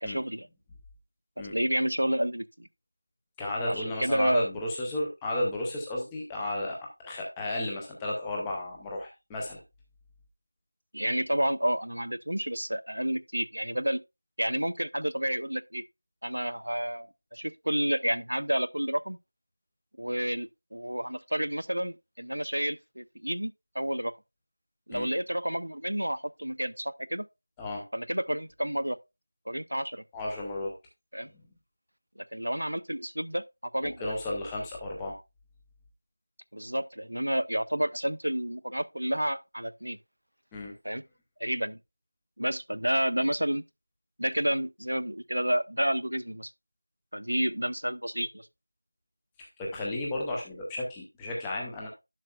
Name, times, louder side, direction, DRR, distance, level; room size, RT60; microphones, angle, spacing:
voice 1, 0.0-0.5 1.5-2.7 3.7-4.5 10.9-14.0 14.4-15.8 16.2-19.2 20.0-24.1 24.9-27.2 27.9-29.0 29.5-30.0 31.1-31.3 32.3-33.4 33.7-34.0 36.5-40.0 40.8-41.0 41.4-41.8 42.4-43.6 44.2-46.5 47.1-48.5, equal, 80° right, 0.6 m, -30 dB
voice 2, 3.4-9.6 24.9-25.1 27.6-27.8 30.1-30.7 31.3-31.4 33.8-35.2 40.5-40.7 49.6-51.9, left 1 dB, 5° left, 0.6 m, -33 dB
10.5 x 6.6 x 2.3 m
figure-of-eight pair, 180°, 0 cm